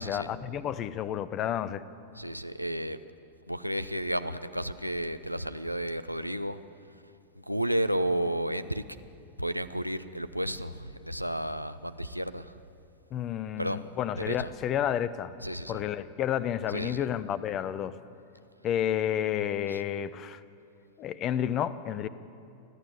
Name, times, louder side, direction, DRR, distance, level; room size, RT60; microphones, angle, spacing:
voice 1, 0.0-1.8 13.1-15.3 15.7-18.0 18.6-20.4 21.0-22.1, left 10 dB, 35° left, 16 dB, 0.8 m, -30 dB
voice 2, 2.2-3.0 3.5-6.6 7.5-8.8 9.4-12.5 13.6-13.9 14.3-14.5 15.4-15.8 16.7-17.1 19.7-19.8, right 1 dB, 90° right, 12 dB, 0.7 m, -32 dB
29.5 x 11.5 x 8.5 m, 2.5 s
figure-of-eight pair, 90°, 0 cm